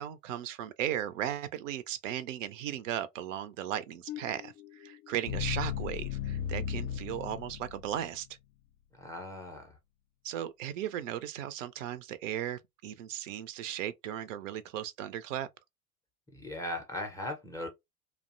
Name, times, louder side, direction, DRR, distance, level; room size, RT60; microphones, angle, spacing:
voice 1, 0.0-8.3 10.2-15.5, right 11 dB, 60° right, 0.5 m, -36 dB
sound 1, 4.1-8.1, left 9 dB, 60° left, 0.5 m, -36 dB
voice 2, 8.9-9.8 16.3-17.7, left 1 dB, 10° left, 0.4 m, -38 dB
2.5 x 2.1 x 2.4 m
figure-of-eight pair, 80°, 44 cm